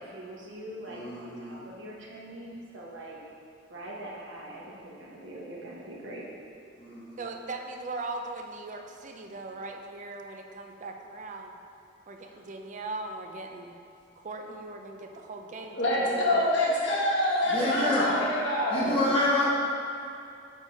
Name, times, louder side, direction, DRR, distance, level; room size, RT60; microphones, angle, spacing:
voice 1, 0.0-3.2 3.7-6.3, right 1 dB, 90° right, -4 dB, 1.1 m, -42 dB
voice 2, 0.9-1.6 6.8-7.2 17.5-18.1 18.7-19.5, left 1 dB, 30° left, -9 dB, 1.0 m, -28 dB
voice 3, 7.2-11.6 12.1-13.7 14.2-16.5, right 3 dB, 40° right, 3 dB, 0.5 m, -39 dB
voice 4, 15.7-19.0, left 1 dB, 70° left, -6 dB, 1.1 m, -26 dB
5.5 x 4.4 x 4.5 m, 2.5 s
head